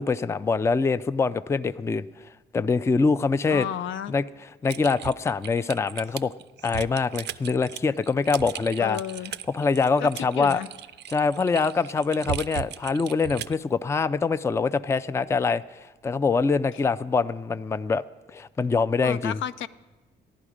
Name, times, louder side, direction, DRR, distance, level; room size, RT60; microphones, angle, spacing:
voice 1, 0.0-2.0 2.5-3.7 4.1-4.2 4.6-6.3 6.6-9.0 9.5-10.6 11.1-18.0 18.3-19.4, left 4 dB, 15° left, 15 dB, 0.3 m, -24 dB
voice 2, 3.5-4.1 8.8-9.3 10.0-10.1 10.4-10.7 16.7-16.8 19.0-19.7, left 10 dB, 75° left, 14 dB, 0.5 m, -32 dB
Typing, 4.7-13.6, right 12 dB, 60° right, 0.4 m, -37 dB
14.5 x 11.0 x 4.9 m, 1.1 s
cardioid pair, 90°, 20 cm